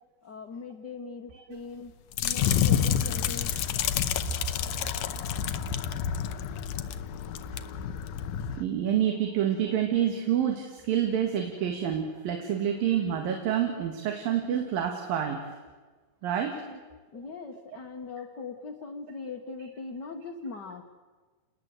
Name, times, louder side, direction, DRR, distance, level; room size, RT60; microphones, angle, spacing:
voice 1, 0.2-1.9 2.2-3.5 16.7-16.8 17.1-20.8, left 4 dB, 50° left, 1 dB, 1.2 m, -40 dB
sound 1, 2.1-7.0 7.2-7.6 8.1-8.2, left 11 dB, 70° left, 1.7 m, -32 dB
sound 2, 2.4-8.6, left 8 dB, 90° left, 2.8 m, -30 dB
voice 2, 8.6-15.5 16.2-16.6, right 9 dB, 85° right, 3 dB, 3.7 m, -28 dB
29.5 x 20.0 x 7.9 m, 1.3 s
omnidirectional pair, 4.0 m